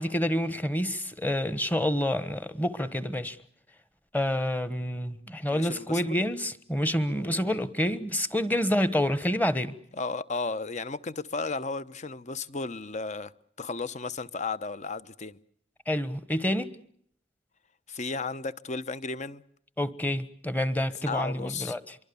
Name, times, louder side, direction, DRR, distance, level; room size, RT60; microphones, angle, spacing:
voice 1, 0.0-3.4 4.1-9.7 15.9-16.7 19.8-21.9, equal, 10° left, 1.3 m, -28 dB
voice 2, 5.4-6.2 7.1-7.5 9.9-13.3 13.6-15.4 17.9-19.4 21.0-21.8, left 4 dB, 40° left, 0.9 m, -34 dB
25.5 x 23.5 x 7.0 m
head